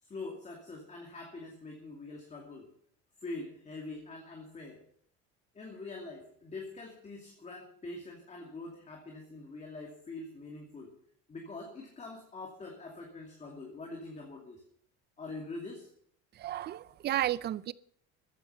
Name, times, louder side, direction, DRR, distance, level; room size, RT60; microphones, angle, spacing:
voice 1, 0.0-2.7 3.2-4.8 5.5-10.9 11.3-14.6 15.2-15.9, left 3 dB, 20° left, 2.5 m, -44 dB
voice 2, 16.3-17.7, right 13 dB, 30° right, 0.4 m, -33 dB
14.5 x 10.5 x 5.5 m
cardioid pair, 140°, 34 cm